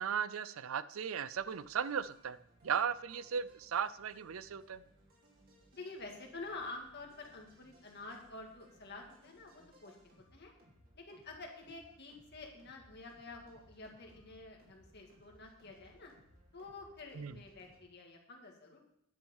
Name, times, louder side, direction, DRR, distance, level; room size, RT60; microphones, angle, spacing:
voice 1, 0.0-2.4 2.6-4.8 17.2-17.3, right 7 dB, 75° right, 15 dB, 0.5 m, -36 dB
sound 1, 1.3-17.8, equal, 45° right, 3.1 m, -65 dB
voice 2, 5.7-10.0 10.3-10.5 11.0-16.1 16.5-18.8, left 3 dB, 50° left, 1 dB, 2.1 m, -49 dB
10.5 x 6.2 x 7.1 m, 0.77 s
head